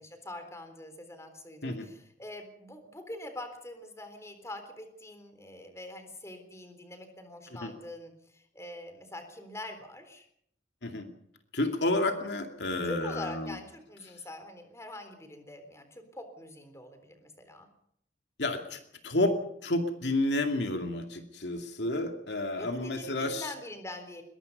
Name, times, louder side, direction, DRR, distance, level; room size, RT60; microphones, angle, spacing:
voice 1, 0.0-10.3 12.8-17.7 22.6-24.2, left 1 dB, 15° left, 8 dB, 3.7 m, -44 dB
voice 2, 11.5-13.6 18.4-19.3 19.6-23.5, left 2 dB, 70° left, 5 dB, 2.5 m, -30 dB
22.0 x 22.0 x 5.4 m, 0.70 s
head